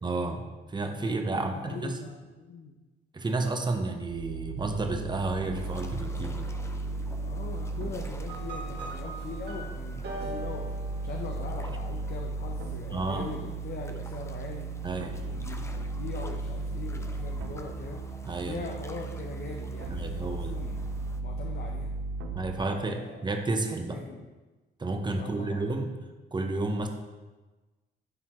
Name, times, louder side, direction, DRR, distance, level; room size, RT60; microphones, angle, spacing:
voice 1, 0.0-2.0 3.1-6.5 12.9-13.3 14.8-15.2 18.3-18.6 19.9-20.6 22.3-24.0 24.8-25.9 26.3-26.9, right 2 dB, 20° right, 5 dB, 0.9 m, -31 dB
voice 2, 1.3-2.8 7.2-14.7 15.1-18.0 18.4-20.8 21.2-21.9 22.5-23.3 23.9-24.2 25.2-25.6, left 4 dB, 50° left, 1 dB, 0.8 m, -41 dB
sound 1, 4.1-22.6, right 3 dB, 90° right, 0.6 m, -35 dB
sound 2, 5.5-21.2, left 1 dB, 15° left, 0.6 m, -51 dB
sound 3, 8.3-11.7, right 2 dB, 55° right, 2.0 m, -42 dB
11.0 x 4.2 x 3.0 m, 1.2 s
cardioid pair, 90°, 20 cm